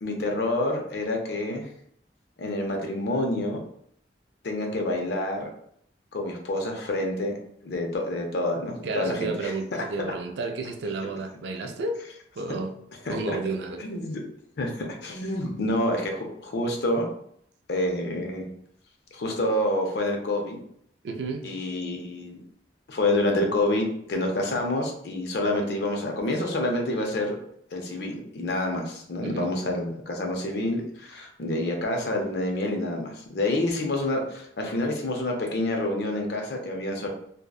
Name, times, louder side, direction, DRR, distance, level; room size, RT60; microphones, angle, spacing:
voice 1, 0.0-1.7 2.4-3.6 4.4-5.5 6.1-7.3 7.6-9.8 13.1-13.4 13.8-14.2 14.6-17.1 17.7-18.5 19.1-20.6 21.4-22.4 22.9-27.4 27.7-37.1, left 1 dB, 60° left, 2 dB, 0.5 m, -28 dB
voice 2, 8.8-12.0 12.4-12.8 13.1-13.8 21.0-21.5 29.2-29.5, right 3 dB, 70° right, 5 dB, 0.3 m, -31 dB
2.6 x 2.1 x 2.2 m, 0.68 s
head